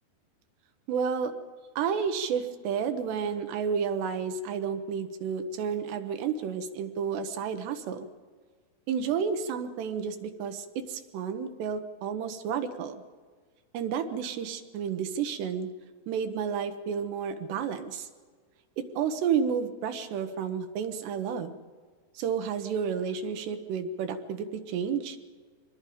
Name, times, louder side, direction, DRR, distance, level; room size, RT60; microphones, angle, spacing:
voice 1, 0.9-1.3 1.8-8.1 8.9-13.0 13.7-15.7 16.1-18.1 18.8-21.6 22.2-25.2, right 7 dB, 90° right, 8 dB, 3.4 m, -31 dB
25.0 x 21.0 x 5.1 m, 1.6 s
omnidirectional pair, 4.7 m